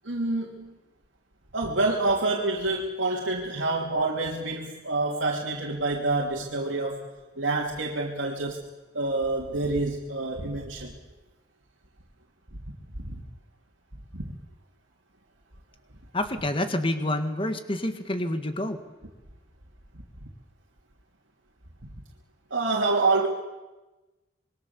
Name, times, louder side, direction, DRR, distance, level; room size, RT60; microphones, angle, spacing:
voice 1, 0.0-0.7 1.5-7.1 7.4-8.6 8.9-10.9 13.0-13.2 14.1-14.3 22.5-23.3, right 2 dB, 75° right, -2 dB, 2.9 m, -27 dB
voice 2, 16.1-18.8, left 1 dB, 30° left, 8 dB, 1.8 m, -28 dB
26.5 x 22.5 x 7.2 m, 1.1 s
head